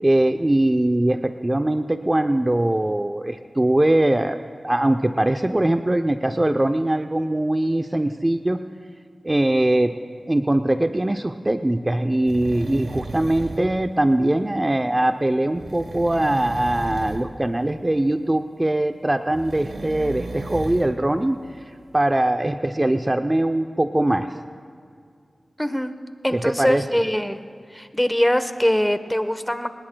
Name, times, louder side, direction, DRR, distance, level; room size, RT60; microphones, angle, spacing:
voice 1, 0.0-4.4 4.6-8.6 9.2-9.9 10.3-21.4 21.9-24.3 26.3-26.8, right 1 dB, 25° right, 7 dB, 0.6 m, -21 dB
sound 1, 12.2-13.8 15.5-17.3 19.3-20.9 21.4-21.5, right 2 dB, 85° right, 1.1 m, -34 dB
voice 2, 25.6-25.9 26.2-27.4 27.7-29.7, equal, 10° left, 9 dB, 1.0 m, -22 dB
26.0 x 19.5 x 2.3 m, 2.2 s
cardioid pair, 40°, 0 cm